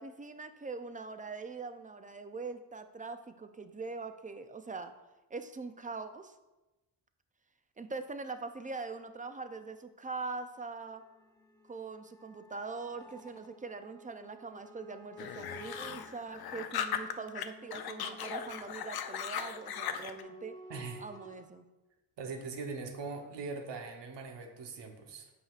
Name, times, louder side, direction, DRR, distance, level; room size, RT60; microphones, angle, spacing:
voice 1, 0.0-4.9 5.3-6.3 7.8-11.0 11.7-20.5 21.0-21.7, right 4 dB, 20° right, 8 dB, 0.3 m, -42 dB
sound 1, 10.8-21.4, equal, 10° left, 0.7 m, -53 dB
sound 2, 15.2-17.4 17.7-20.2, left 9 dB, 65° left, 0.5 m, -38 dB
voice 2, 20.7-21.0 22.2-25.3, right 4 dB, 85° right, 3 dB, 1.0 m, -41 dB
8.4 x 5.7 x 2.4 m, 1.1 s
wide cardioid pair, 125°, 41 cm